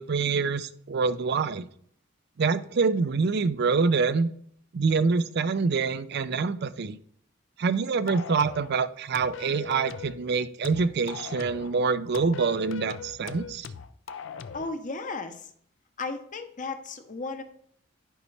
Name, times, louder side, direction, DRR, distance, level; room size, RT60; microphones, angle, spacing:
voice 1, 0.0-1.7 2.4-4.3 4.7-7.0 7.6-13.7, right 4 dB, 55° right, 14 dB, 0.5 m, -26 dB
sound 1, 8.1-8.7 9.1-10.2 10.6-11.7 12.1-14.7, left 5 dB, 65° left, 0.5 m, -39 dB
voice 2, 14.5-15.5 16.0-17.4, left 3 dB, 40° left, 7 dB, 0.8 m, -35 dB
11.0 x 5.4 x 3.3 m, 0.63 s
head